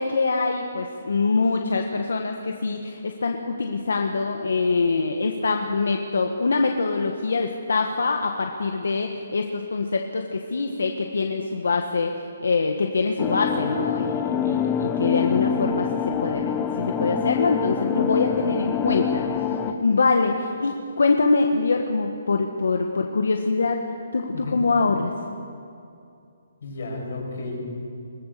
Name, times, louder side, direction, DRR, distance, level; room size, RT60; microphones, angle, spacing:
voice 1, 0.0-19.2 19.8-23.8 24.1-25.1, left 4 dB, 90° left, 3 dB, 1.6 m, -24 dB
sound 1, 13.2-19.7, left 7 dB, 15° left, 1.0 m, -25 dB
voice 2, 24.3-24.7 26.6-27.6, left 2 dB, 60° left, 0 dB, 6.8 m, -33 dB
21.5 x 17.5 x 6.9 m, 2.5 s
hypercardioid pair, 170°, 0 cm